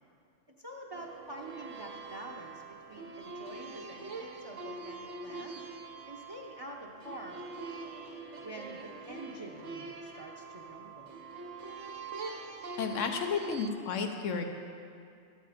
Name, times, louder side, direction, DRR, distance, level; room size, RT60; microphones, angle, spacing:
voice 1, 0.6-2.6 2.9-5.7 6.1-7.5 8.4-11.1, right 1 dB, 25° right, 0 dB, 0.6 m, -46 dB
sound 1, 0.9-13.7, right 3 dB, 80° right, 1.3 m, -44 dB
voice 2, 12.8-14.4, left 5 dB, 90° left, 5 dB, 1.2 m, -32 dB
12.5 x 7.9 x 5.0 m, 2.4 s
omnidirectional pair, 1.3 m